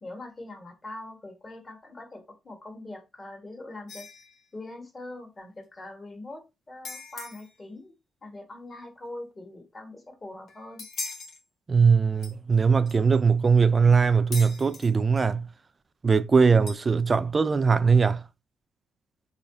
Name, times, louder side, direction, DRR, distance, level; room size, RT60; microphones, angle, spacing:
voice 1, 0.0-4.1 4.5-7.9 8.2-10.8, left 2 dB, 30° left, 1.4 m, -42 dB
sound 1, 3.9-4.4 6.8-7.5 10.5-11.4 12.2-12.3 12.9-13.2 14.3-14.9 16.7-17.2, left 4 dB, 60° left, 1.1 m, -40 dB
voice 2, 11.7-15.5 16.0-18.2, right 5 dB, 30° right, 0.3 m, -21 dB
3.5 x 3.2 x 2.7 m
cardioid pair, 90°, 0 cm